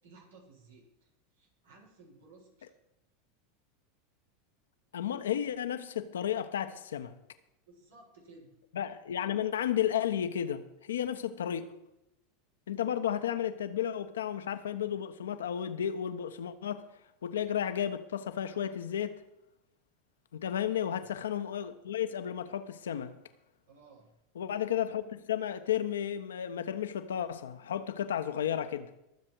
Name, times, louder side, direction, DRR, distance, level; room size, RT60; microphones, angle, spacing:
voice 1, 0.0-2.7 7.6-8.6 20.7-21.1 23.7-24.1, right 3 dB, 85° right, 6.4 m, -57 dB
voice 2, 4.9-7.1 8.7-11.7 12.7-16.8 17.2-19.2 20.3-23.1 24.3-28.9, left 9 dB, 80° left, 1.2 m, -33 dB
23.0 x 7.6 x 4.8 m
hypercardioid pair, 95°, 0 cm